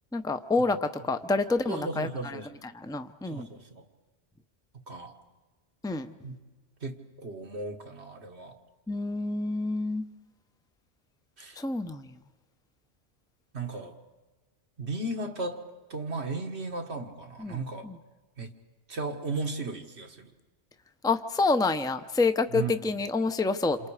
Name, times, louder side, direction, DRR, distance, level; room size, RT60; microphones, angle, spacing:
voice 1, 0.1-2.4 2.6-3.5 5.8-6.1 8.9-10.1 11.6-12.2 17.4-18.0 21.0-23.8, left 3 dB, 5° left, 9 dB, 0.7 m, -28 dB
voice 2, 1.7-2.6 3.3-3.9 4.9-5.1 6.2-6.4 6.8-8.6 11.4-11.6 13.5-14.0 14.8-17.9 18.4-18.5 18.9-20.3 22.5-22.7, right 3 dB, 85° right, 4 dB, 2.0 m, -35 dB
28.0 x 27.0 x 5.0 m, 1.2 s
omnidirectional pair, 1.1 m